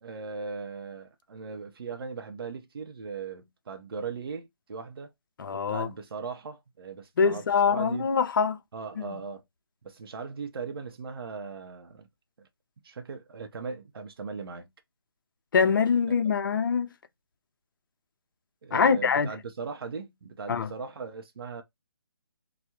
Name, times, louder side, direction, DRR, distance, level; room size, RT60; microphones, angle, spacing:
voice 1, 0.0-5.1 5.5-8.1 8.7-9.4 9.8-12.1 12.4-12.5 12.8-14.7 18.6-21.6, right 5 dB, 60° right, 0.6 m, -39 dB
voice 2, 5.4-5.9 7.2-8.6 9.0-9.1 15.5-16.9 18.7-19.3 20.5-20.7, left 6 dB, 50° left, 0.4 m, -24 dB
2.2 x 2.0 x 2.8 m
figure-of-eight pair, 160°, 14 cm